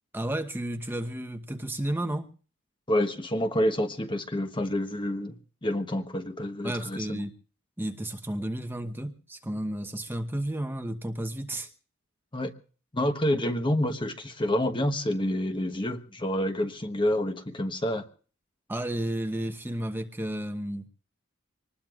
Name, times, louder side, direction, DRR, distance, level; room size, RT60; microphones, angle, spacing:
voice 1, 0.1-2.3 6.6-7.3 7.8-11.7 18.7-20.9, right 1 dB, 10° right, 6 dB, 1.0 m, -32 dB
voice 2, 2.9-7.2 12.3-12.5 12.9-18.0, left 1 dB, 25° left, 8 dB, 1.1 m, -28 dB
25.5 x 19.5 x 2.5 m, 0.40 s
head